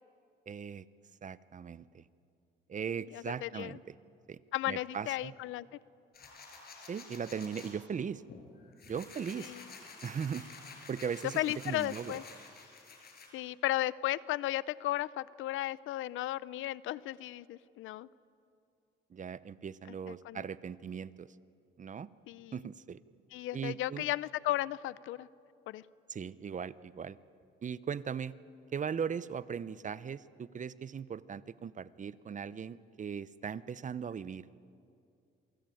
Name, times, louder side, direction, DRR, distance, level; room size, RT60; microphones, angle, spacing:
voice 1, 0.5-0.9 1.2-2.1 2.7-3.9 4.3-4.4 4.7-5.3 6.9-8.2 8.9-9.5 10.0-10.5 10.9-12.2 19.1-21.3 21.8-22.1 22.5-23.0 23.5-24.0 26.1-27.2 27.6-28.3 28.7-34.5, right 7 dB, 40° right, 17 dB, 0.8 m, -39 dB
voice 2, 3.1-3.8 4.5-5.7 9.4-9.6 11.4-12.2 13.3-18.1 20.1-20.4 22.3-22.5 23.3-25.3 25.7-25.8, left 15 dB, 85° left, 19 dB, 0.6 m, -35 dB
sound 1, 6.1-7.7 8.3-13.3, left 4 dB, 50° left, 6.0 m, -50 dB
27.5 x 22.5 x 9.2 m, 2.5 s
cardioid pair, 90°, 20 cm